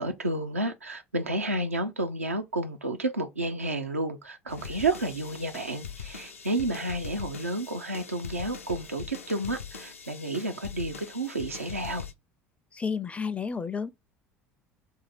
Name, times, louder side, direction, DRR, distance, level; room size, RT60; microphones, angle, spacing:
voice 1, 0.0-12.0, right 2 dB, 85° right, 0.6 m, -31 dB
sound 1, 4.5-12.1, left 6 dB, 80° left, 0.6 m, -42 dB
voice 2, 12.7-13.9, left 5 dB, 15° left, 0.4 m, -31 dB
2.8 x 2.7 x 4.0 m
figure-of-eight pair, 65°, 7 cm